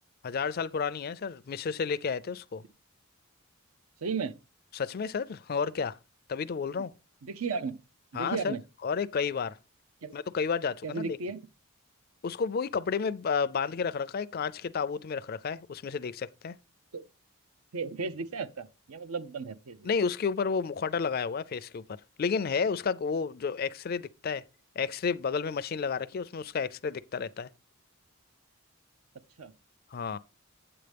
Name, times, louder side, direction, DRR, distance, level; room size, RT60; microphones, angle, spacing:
voice 1, 0.2-2.6 4.7-6.0 6.3-6.9 8.1-8.6 8.8-9.6 10.1-11.2 12.2-16.5 19.8-21.8 22.2-24.4 24.8-27.5 29.9-30.2, left 5 dB, 45° left, 0.4 m, -31 dB
voice 2, 4.0-4.4 7.2-7.8 8.1-8.6 10.0-10.2 10.8-11.4 16.9-17.0 17.7-19.9 29.4-29.5, right 5 dB, 85° right, 0.7 m, -34 dB
8.7 x 7.7 x 3.4 m
head